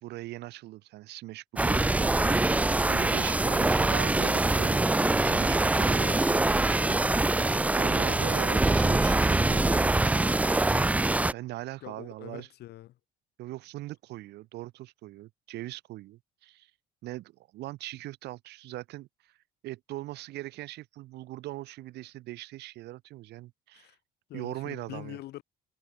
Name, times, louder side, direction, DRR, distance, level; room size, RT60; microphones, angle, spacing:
voice 1, 0.0-7.3 7.8-10.4 11.3-12.5 13.4-16.7 17.0-19.3 19.6-23.9 24.3-25.2, right 17 dB, 80° right, 3.8 m, -40 dB
sound 1, 1.6-11.3, right 2 dB, 10° right, 0.4 m, -24 dB
voice 2, 11.8-13.0 23.7-24.0 24.3-25.4, left 15 dB, 75° left, 4.1 m, -44 dB
cardioid pair, 110°, 17 cm